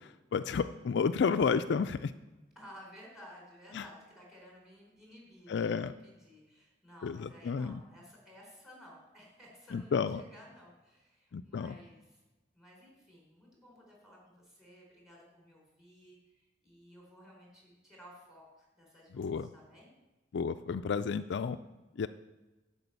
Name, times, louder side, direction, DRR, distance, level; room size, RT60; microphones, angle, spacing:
voice 1, 0.0-2.1 3.7-3.8 5.5-5.9 7.0-7.8 9.7-10.2 11.3-11.8 19.1-19.5 20.3-21.6 22.0-22.1, left 5 dB, 65° left, 10 dB, 0.4 m, -31 dB
voice 2, 2.6-12.2 12.5-19.9, equal, ahead, -2 dB, 3.9 m, -55 dB
11.0 x 5.3 x 8.0 m, 1.1 s
head